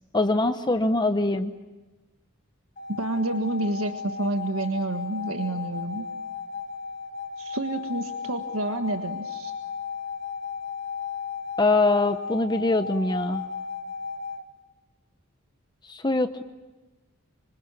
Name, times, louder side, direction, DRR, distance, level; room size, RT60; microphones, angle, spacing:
voice 1, 0.1-1.5 11.6-13.4 15.9-16.4, left 2 dB, 20° left, 8 dB, 0.9 m, -23 dB
sound 1, 2.8-14.4, left 6 dB, 40° left, 3.2 m, -35 dB
voice 2, 2.9-6.1 7.4-9.5, right 2 dB, 90° right, 6 dB, 1.6 m, -29 dB
26.0 x 26.0 x 8.9 m, 1.1 s
head